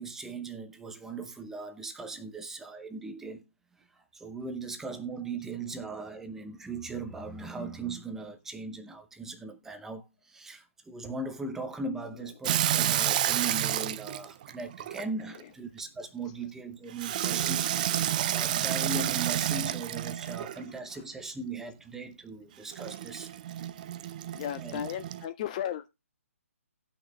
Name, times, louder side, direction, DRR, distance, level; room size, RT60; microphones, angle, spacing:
voice 1, 0.0-3.4 3.9-17.7 18.0-23.3 24.6-24.8, right 3 dB, 5° right, 0.7 m, -39 dB
Water tap faucet / Sink (filling or washing), 12.4-15.4 17.0-20.7 22.7-25.2, right 11 dB, 35° right, 0.4 m, -30 dB
voice 2, 24.3-25.9, left 10 dB, 30° left, 0.4 m, -35 dB
18.0 x 6.0 x 2.3 m
hypercardioid pair, 145°, 8 cm